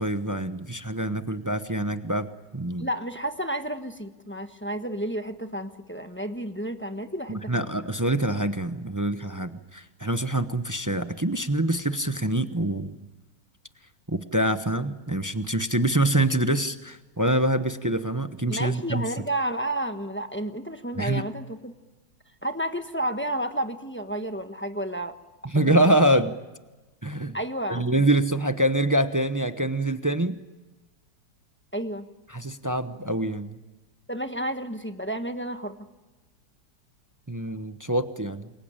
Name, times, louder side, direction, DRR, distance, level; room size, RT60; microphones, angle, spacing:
voice 1, 0.0-2.3 2.5-2.9 7.3-13.0 14.1-19.0 21.0-21.2 25.5-26.3 27.0-27.4 27.7-30.4 32.3-33.6 37.3-38.5, right 1 dB, 20° right, 9 dB, 0.6 m, -25 dB
voice 2, 2.8-7.7 18.5-21.7 22.4-25.1 25.7-25.8 27.3-27.8 31.7-32.1 34.1-35.8, right 1 dB, 10° left, 7 dB, 1.0 m, -31 dB
28.0 x 23.0 x 8.9 m, 1.2 s
omnidirectional pair, 1.9 m